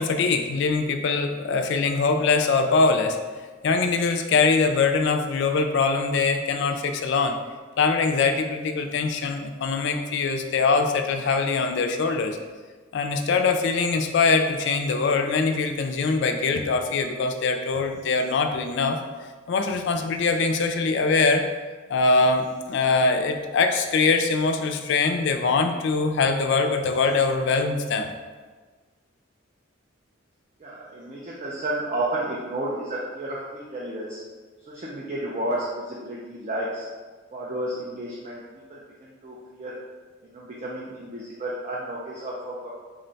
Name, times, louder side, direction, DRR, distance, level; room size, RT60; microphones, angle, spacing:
voice 1, 0.0-3.2 3.6-7.4 7.8-12.4 12.9-19.0 19.5-21.4 21.9-28.1, left 4 dB, 55° left, 5 dB, 0.3 m, -23 dB
voice 2, 30.6-34.2 34.7-36.9 37.3-38.4 38.7-39.8 40.2-42.7, right 1 dB, 35° right, -5 dB, 0.4 m, -32 dB
3.7 x 2.2 x 3.9 m, 1.4 s
head